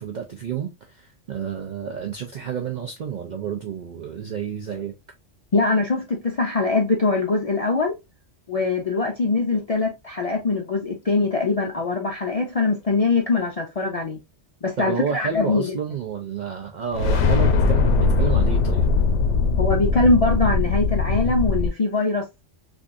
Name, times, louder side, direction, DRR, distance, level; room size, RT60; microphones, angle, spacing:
voice 1, 0.0-4.9 14.8-18.9, right 7 dB, 65° right, 0.4 m, -30 dB
voice 2, 5.5-7.9 8.5-14.2 14.6-15.7 19.6-22.4, left 3 dB, 55° left, 0.4 m, -22 dB
sound 1, 16.9-21.7, left 4 dB, 75° left, 0.9 m, -20 dB
3.5 x 2.6 x 2.5 m
omnidirectional pair, 1.3 m